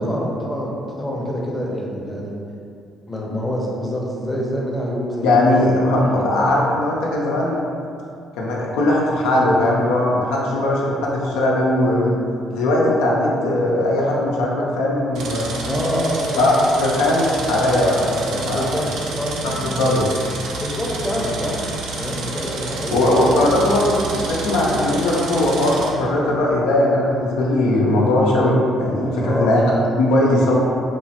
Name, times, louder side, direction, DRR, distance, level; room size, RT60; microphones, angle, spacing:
voice 1, 0.0-2.3 3.1-6.3 15.7-16.6 18.2-19.6 20.6-21.6 21.9-23.5 29.2-29.7, equal, 10° left, -4 dB, 0.6 m, -26 dB
voice 2, 5.2-7.6 8.4-12.2 12.5-15.5 16.4-18.6 19.4-19.5 19.8-20.0 22.9-30.5, left 1 dB, 90° left, -4 dB, 0.4 m, -19 dB
sound 1, 15.1-25.9, right 3 dB, 75° right, 0.4 m, -30 dB
3.0 x 2.0 x 2.8 m, 2.5 s
supercardioid pair, 75°, 0 cm